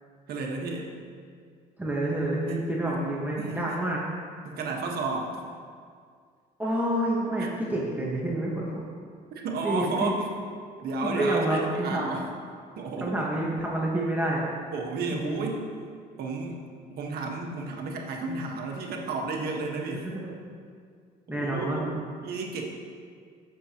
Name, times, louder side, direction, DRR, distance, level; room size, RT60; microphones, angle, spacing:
voice 1, 0.3-0.9 2.5-2.6 2.8-3.0 3.4-3.8 4.4-5.4 7.4-7.5 9.3-10.3 10.8-12.3 12.8-13.4 14.7-15.7 16.2-16.6 16.9-20.1 21.3-21.9 22.2-22.6, right 3 dB, 65° right, 0 dB, 1.5 m, -32 dB
voice 2, 1.8-4.0 6.6-8.8 9.6-10.1 11.0-12.1 13.0-14.5 15.1-15.5 20.0-20.3 21.3-22.0, right 1 dB, 10° right, -5 dB, 1.4 m, -28 dB
15.5 x 7.0 x 3.0 m, 2.1 s
cardioid pair, 110°, 17 cm